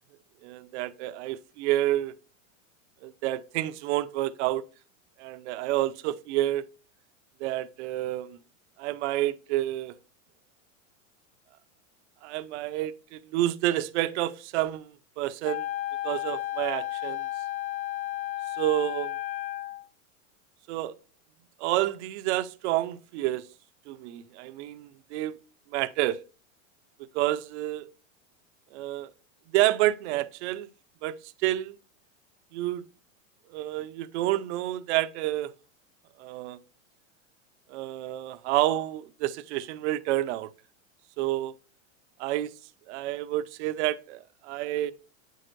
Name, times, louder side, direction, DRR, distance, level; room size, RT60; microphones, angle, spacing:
voice 1, 0.4-2.1 3.0-4.6 5.2-6.6 7.4-8.4 8.8-10.0 12.2-14.9 15.2-15.7 16.0-17.3 18.5-19.1 20.7-20.9 21.6-23.5 23.9-25.4 25.7-26.2 27.1-27.9 28.7-29.1 29.5-30.7 31.0-31.8 32.5-32.8 33.5-35.5 36.2-36.6 37.7-40.5 41.2-41.5 42.2-42.5 42.9-44.9, right 15 dB, 60° right, 0.7 m, -29 dB
Wind instrument woodwind instrument, 15.4-19.9, left 15 dB, 40° left, 0.6 m, -33 dB
8.3 x 6.5 x 2.6 m
supercardioid pair, 140°, 40 cm